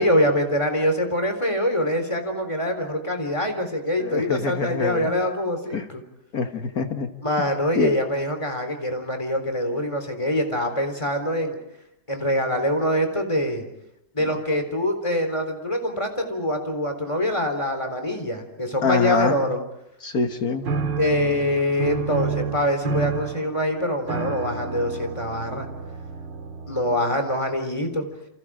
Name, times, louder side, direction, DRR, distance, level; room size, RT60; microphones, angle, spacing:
voice 1, 0.0-6.0 7.2-11.6 12.1-13.6 14.1-19.6 21.0-25.7 26.7-28.1, left 1 dB, 15° left, 6 dB, 3.9 m, -24 dB
voice 2, 4.0-5.2 5.7-5.9 6.3-7.1 7.8-8.0 18.8-19.4 20.0-20.7, left 4 dB, 55° left, 6 dB, 1.8 m, -25 dB
sound 1, 20.6-27.1, right 5 dB, 80° right, 2.5 m, -30 dB
29.5 x 27.5 x 5.1 m, 0.84 s
omnidirectional pair, 1.9 m